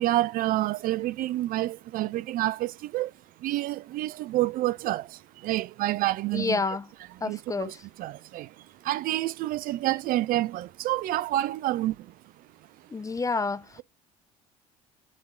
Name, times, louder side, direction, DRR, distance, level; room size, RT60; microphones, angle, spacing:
voice 1, 0.0-3.1 3.4-6.6 7.2-8.5 8.8-12.1, right 15 dB, 55° right, 0.5 m, -28 dB
voice 2, 6.3-6.9 7.2-7.8 12.9-13.8, left 4 dB, 20° left, 0.5 m, -29 dB
7.5 x 3.6 x 3.6 m
hypercardioid pair, 60°, 18 cm